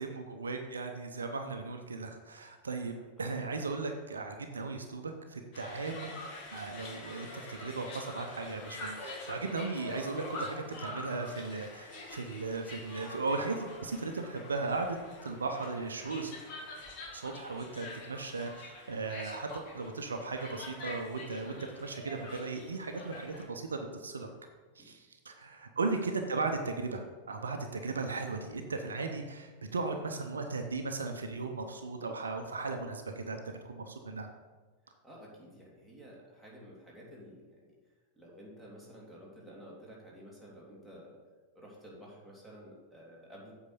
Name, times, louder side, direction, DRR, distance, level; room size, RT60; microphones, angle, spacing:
voice 1, 0.0-15.0 15.2-16.3 17.1-24.3 24.8-33.4 33.6-34.3, right 3 dB, 70° right, 5 dB, 0.7 m, -37 dB
voice 2, 3.2-3.5 24.2-24.4 24.8-24.9 34.8-37.7 38.1-41.2 41.5-43.5, equal, 5° left, -4 dB, 2.8 m, -52 dB
sound 1, 5.5-23.4, left 2 dB, 40° left, 1.9 m, -45 dB
8.2 x 4.8 x 6.9 m, 1.3 s
figure-of-eight pair, 90°, 0 cm